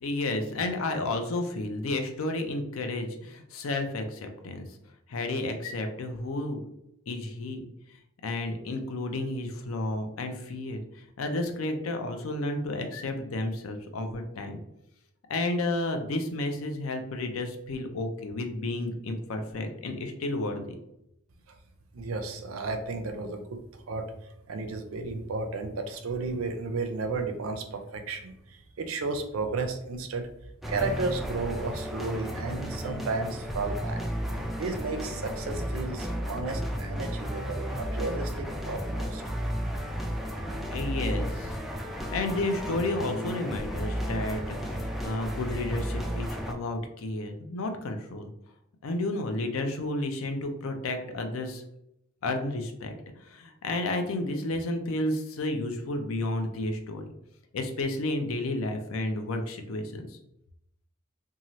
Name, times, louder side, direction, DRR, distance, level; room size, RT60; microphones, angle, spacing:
voice 1, 0.0-4.7 5.1-6.6 7.1-7.7 8.2-14.6 15.3-20.6 40.7-41.6 42.1-48.3 48.8-51.6 52.2-57.0 57.5-60.2, left 2 dB, 80° left, 5 dB, 0.5 m, -31 dB
voice 2, 21.9-23.6 23.9-24.1 24.5-30.3 30.7-34.0 34.6-39.2, right 3 dB, 85° right, 6 dB, 0.5 m, -33 dB
sound 1, 30.6-46.5, equal, ahead, 0.3 m, -33 dB
2.7 x 2.4 x 3.0 m, 0.81 s
head